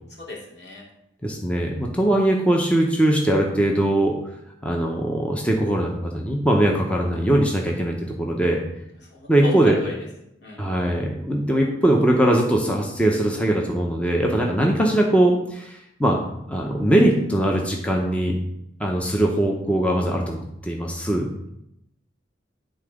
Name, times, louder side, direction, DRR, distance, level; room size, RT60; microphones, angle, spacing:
voice 1, 0.2-0.8 9.1-9.5 9.8-9.9 10.4-10.6 14.4-14.5, left 3 dB, 65° left, -3 dB, 2.4 m, -36 dB
voice 2, 1.2-4.2 4.6-8.6 9.3-9.8 10.6-16.2 16.5-18.3 18.8-21.3, right 1 dB, 5° left, 0 dB, 0.8 m, -21 dB
9.9 x 3.8 x 4.9 m, 0.79 s
head